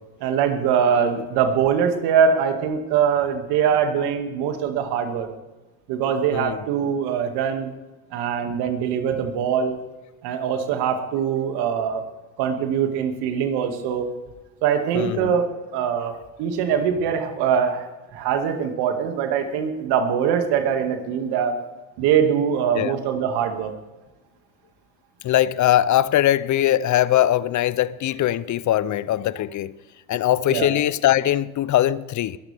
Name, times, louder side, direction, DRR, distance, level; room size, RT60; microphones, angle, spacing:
voice 1, 0.2-5.3 5.9-7.7 8.1-9.8 10.2-12.0 12.4-14.1 14.6-15.5 15.7-16.1 16.4-17.9 18.1-21.5 22.0-23.7 30.5-30.7, right 7 dB, 70° right, 2.2 m, -22 dB
voice 2, 14.9-15.3 19.4-19.5 22.7-23.0 25.2-29.7 30.1-32.4, left 12 dB, 45° left, 0.6 m, -21 dB
22.0 x 13.0 x 3.5 m
hypercardioid pair, 65°, 40 cm